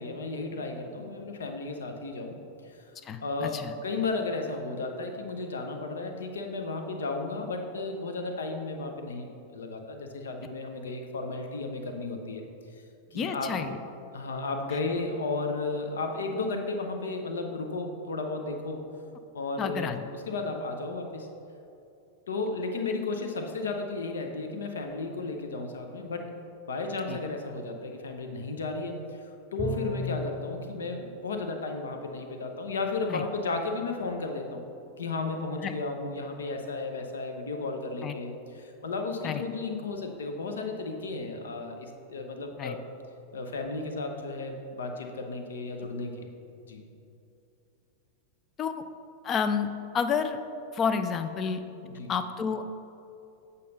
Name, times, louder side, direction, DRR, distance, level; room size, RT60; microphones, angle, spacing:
voice 1, 0.0-2.4 2.6-2.8 3.2-12.4 13.1-13.7 14.1-18.8 19.3-20.0 20.3-21.3 22.3-26.3 26.7-34.6 35.0-42.8 43.3-46.3 46.6-46.8 51.8-52.1, left 3 dB, 65° left, 4 dB, 0.8 m, -34 dB
voice 2, 3.0-3.8 13.1-13.8 19.6-20.1 27.1-27.2 33.1-33.3 35.6-35.7 38.0-38.1 39.2-39.4 42.6-42.8 48.6-48.8 49.2-49.7 49.9-50.4 50.7-51.6 52.1-52.6, left 6 dB, 30° left, 10 dB, 0.5 m, -30 dB
Bowed string instrument, 29.6-30.5, equal, 10° left, 1.8 m, -33 dB
8.4 x 5.4 x 4.0 m, 2.7 s
figure-of-eight pair, 90°, 0 cm